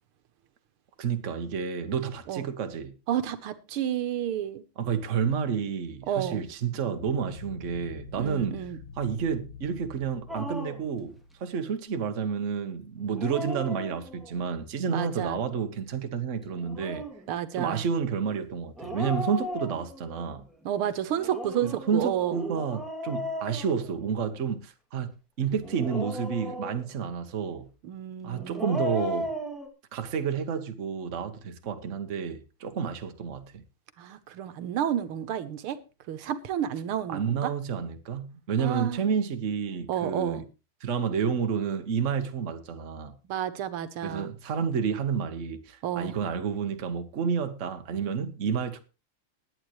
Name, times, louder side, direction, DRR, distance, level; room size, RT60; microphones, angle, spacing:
voice 1, 1.0-2.9 4.8-8.6 9.0-11.1 11.4-17.0 17.5-20.5 21.6-27.7 28.2-29.3 29.9-33.6 37.1-40.4 40.8-43.2 44.0-48.8, right 6 dB, 40° right, 1.3 m, -30 dB
voice 2, 3.1-4.6 6.1-6.4 8.2-8.8 14.9-15.4 17.3-17.8 20.7-22.4 27.8-28.7 34.0-35.8 36.1-37.5 38.6-39.1 39.9-40.4 43.3-44.3 45.8-46.2, right 10 dB, 85° right, 1.8 m, -31 dB
sound 1, 7.0-11.7, left 4 dB, 80° left, 3.3 m, -45 dB
Dog, 10.3-10.9 13.0-14.4 16.5-17.3 18.8-20.2 21.2-24.4 25.6-27.0 28.3-29.7, equal, ahead, 2.3 m, -36 dB
20.0 x 9.2 x 3.1 m
omnidirectional pair, 2.3 m